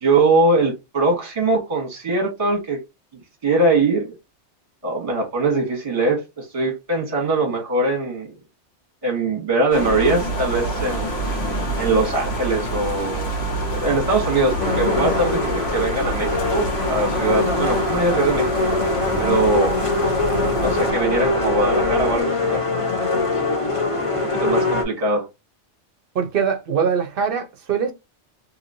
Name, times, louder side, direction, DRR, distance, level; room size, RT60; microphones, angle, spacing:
voice 1, 0.0-2.8 3.4-4.1 4.8-8.3 9.0-11.1 11.8-13.3 13.7-18.5 19.2-19.8 20.6-23.3 24.2-25.3, right 2 dB, 30° right, 1.2 m, -22 dB
sound 1, 9.7-22.2, right 2 dB, 65° left, 1.5 m, -28 dB
sound 2, 10.0-20.9, left 2 dB, 80° left, 1.2 m, -34 dB
sound 3, 14.6-24.8, left 3 dB, 30° left, 0.8 m, -23 dB
voice 2, 26.1-27.9, right 7 dB, 60° right, 0.8 m, -22 dB
2.9 x 2.7 x 2.6 m
omnidirectional pair, 1.2 m